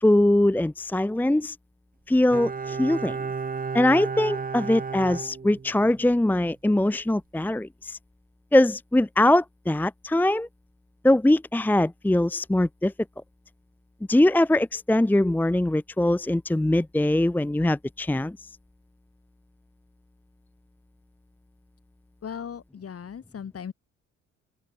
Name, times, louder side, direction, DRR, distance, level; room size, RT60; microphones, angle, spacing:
voice 1, 0.0-1.6 2.1-3.2 3.7-8.0 8.5-10.5 11.0-12.9 14.1-18.4, left 1 dB, 5° left, 0.7 m, -22 dB
Bowed string instrument, 2.3-6.1 6.4-6.5, right 5 dB, 30° right, 1.5 m, -33 dB
voice 2, 22.2-23.7, left 7 dB, 50° left, 5.8 m, -37 dB
open air
cardioid pair, 90°, 30 cm